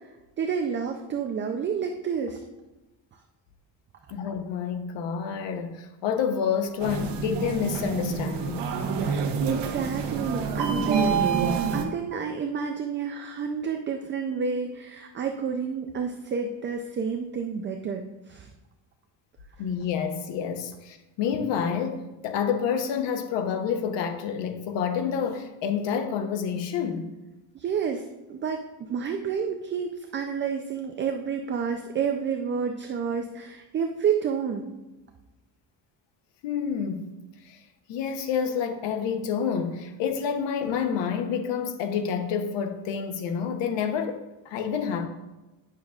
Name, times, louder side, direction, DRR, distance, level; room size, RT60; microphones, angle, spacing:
voice 1, 0.4-2.4 8.9-11.2 11.7-18.5 27.5-28.0 28.3-34.7, right 6 dB, 30° right, 0.3 m, -30 dB
voice 2, 4.1-8.7 19.6-27.1 36.4-37.1 37.4-37.6 37.9-44.2 44.5-45.1, left 7 dB, 90° left, 0.8 m, -28 dB
sound 1, 6.8-11.8, right 6 dB, 75° right, 1.0 m, -27 dB
9.1 x 6.3 x 2.4 m
cardioid pair, 155°, 43 cm